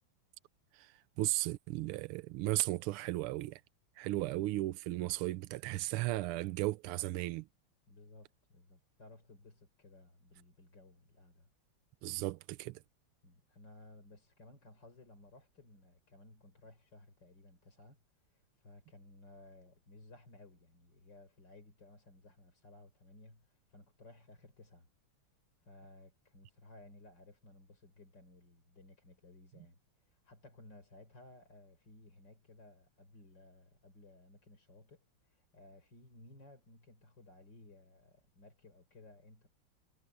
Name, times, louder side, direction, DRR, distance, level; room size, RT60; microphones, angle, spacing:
voice 1, 0.7-3.6 4.0-7.5 12.0-12.8, right 17 dB, 90° right, 1.5 m, -35 dB
voice 2, 7.9-11.5 13.2-18.0 18.3-24.9 25.6-29.8 30.1-39.5, left 2 dB, 55° left, 5.2 m, -58 dB
omnidirectional pair, 2.4 m